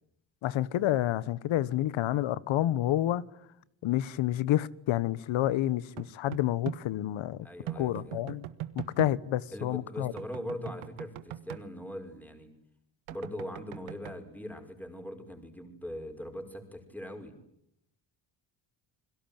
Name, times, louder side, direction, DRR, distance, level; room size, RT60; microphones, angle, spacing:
voice 1, 0.4-3.2 3.8-7.5 7.8-8.4 8.7-10.1, left 13 dB, 80° left, 1.4 m, -29 dB
sound 1, 6.0-6.8 7.7-9.1 10.2-11.6 13.1-14.1, right 14 dB, 90° right, 1.8 m, -40 dB
voice 2, 7.4-8.2 9.5-12.5 13.1-17.4, left 1 dB, 5° left, 5.6 m, -41 dB
29.5 x 22.0 x 9.2 m
cardioid pair, 115°, 47 cm